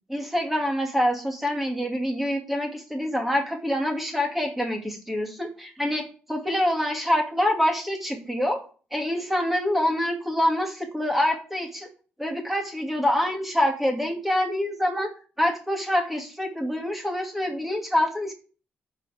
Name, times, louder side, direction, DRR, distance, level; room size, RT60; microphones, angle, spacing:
voice 1, 0.1-8.6 8.9-11.9 12.2-15.1 15.4-18.3, left 1 dB, 5° right, 1 dB, 2.3 m, -26 dB
14.5 x 5.6 x 3.5 m, 0.39 s
cardioid pair, 125°, 4 cm